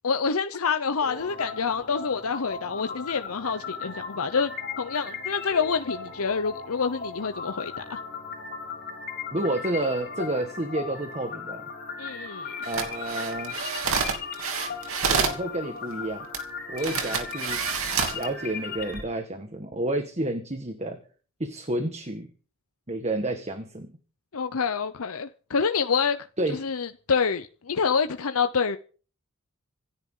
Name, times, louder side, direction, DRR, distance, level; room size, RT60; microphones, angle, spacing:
voice 1, 0.0-4.5 4.8-8.0 12.0-12.5 16.8-16.9 24.3-26.2 26.5-28.8, left 5 dB, 75° left, 0.8 m, -27 dB
sound 1, 1.0-19.0, left 5 dB, 50° left, 7.6 m, -37 dB
voice 2, 9.3-11.6 12.6-13.6 15.1-16.3 16.7-17.6 18.1-21.0 21.4-22.3 22.9-23.9 26.4-26.6, right 1 dB, 30° right, 1.6 m, -30 dB
sound 2, 12.6-15.4 16.3-16.4 16.8-18.2 18.8-19.0, right 5 dB, 70° right, 2.9 m, -28 dB
26.5 x 10.5 x 3.9 m
head